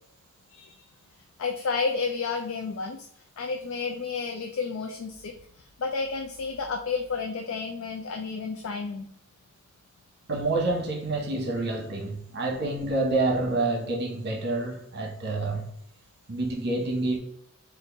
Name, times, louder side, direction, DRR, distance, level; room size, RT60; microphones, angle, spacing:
voice 1, 1.4-9.1, left 4 dB, 65° left, 0.4 m, -31 dB
voice 2, 10.3-15.7 16.3-17.2, right 2 dB, 50° right, 1.0 m, -28 dB
4.4 x 2.6 x 3.9 m
head